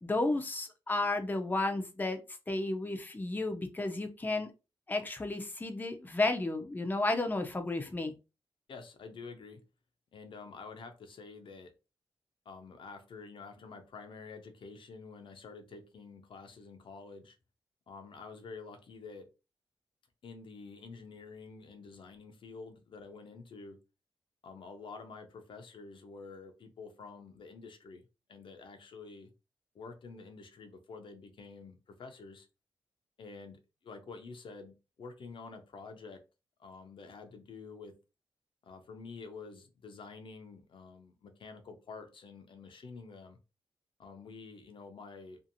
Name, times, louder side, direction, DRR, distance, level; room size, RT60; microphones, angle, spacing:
voice 1, 0.0-2.2 2.5-4.5 4.9-8.1, left 2 dB, 20° left, 0.6 m, -32 dB
voice 2, 8.7-9.6 10.1-11.7 12.5-17.4 17.9-19.3 20.2-23.8 24.4-29.3 29.7-32.5 33.2-36.2 36.6-38.0 38.6-43.4 44.0-45.4, left 4 dB, 65° left, 0.6 m, -48 dB
2.7 x 2.5 x 2.6 m
cardioid pair, 60°, 9 cm